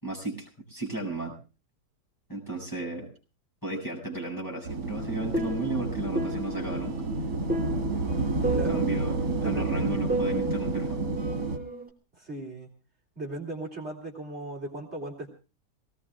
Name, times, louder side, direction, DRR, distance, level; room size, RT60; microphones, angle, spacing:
voice 1, 0.0-1.3 2.3-3.1 3.6-7.1 8.5-11.0, right 2 dB, 10° left, -1 dB, 7.4 m, -34 dB
sound 1, 4.6-11.6, right 3 dB, 70° right, 2.7 m, -30 dB
sound 2, 5.0-11.9, right 1 dB, 5° right, 3.0 m, -34 dB
voice 2, 8.5-8.8 9.4-10.1 12.1-12.7 13.2-15.4, right 2 dB, 40° right, -2 dB, 3.3 m, -37 dB
27.0 x 19.5 x 2.4 m, 0.34 s
omnidirectional pair, 1.8 m